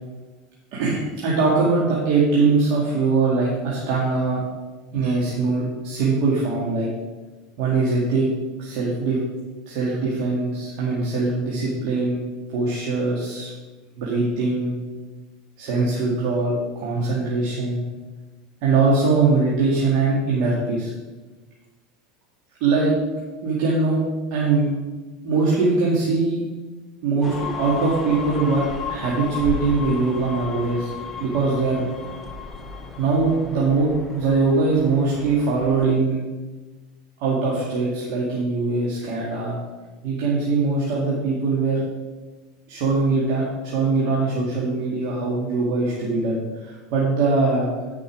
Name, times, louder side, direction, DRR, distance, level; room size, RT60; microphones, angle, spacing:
voice 1, 0.7-4.4 4.9-6.9 7.6-8.3 8.6-9.2 9.7-12.2 12.5-13.5 14.0-14.8 15.6-17.8 18.6-20.9 22.6-22.9 23.4-24.0 24.3-24.7 25.2-26.4 27.0-30.9 31.2-31.9 33.0-36.2 37.2-39.6 40.0-41.8 42.7-47.7, right 3 dB, 65° right, -5 dB, 2.1 m, -22 dB
sound 1, 27.2-35.9, left 5 dB, 15° left, 1.2 m, -34 dB
9.3 x 5.3 x 4.9 m, 1.2 s
supercardioid pair, 115°, 0 cm